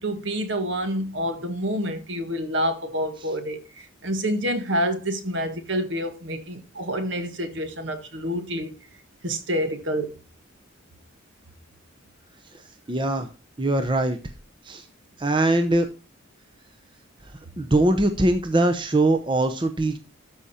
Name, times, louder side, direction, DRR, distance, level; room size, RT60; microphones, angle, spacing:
voice 1, 0.0-8.7 9.2-10.1, equal, 60° right, 1.5 m, -28 dB
voice 2, 12.9-13.3 13.6-14.2 14.7-14.8 15.2-15.9 17.6-20.0, right 2 dB, 25° right, 0.7 m, -21 dB
12.5 x 5.0 x 4.2 m
head